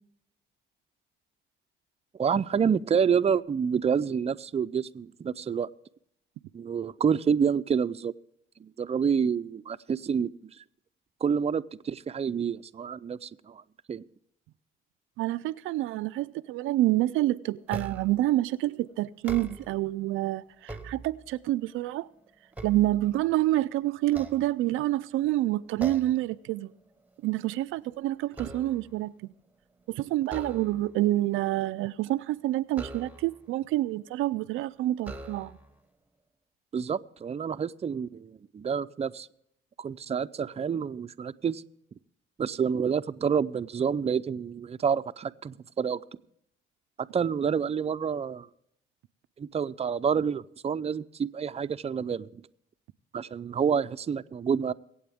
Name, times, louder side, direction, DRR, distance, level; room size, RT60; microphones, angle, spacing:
voice 1, 2.2-5.7 6.5-8.1 8.6-10.3 11.2-13.6 13.9-14.1 36.7-39.3 39.8-41.6 42.4-46.0 47.1-48.5 49.4-52.4 53.1-54.7, right 7 dB, 30° right, 0.5 m, -28 dB
voice 2, 15.2-22.1 22.6-26.7 27.2-29.3 29.9-35.6, right 15 dB, 90° right, 0.4 m, -28 dB
sound 1, 17.7-18.3 19.1-19.9 20.4-21.5 22.0-23.5 24.0-25.0 25.8-26.3 26.7-26.9 27.3-29.0 30.2-31.0 32.7-33.5 34.3-34.4 35.0-35.8, right 2 dB, 5° right, 1.2 m, -42 dB
23.0 x 8.6 x 3.5 m
cardioid pair, 90°, 20 cm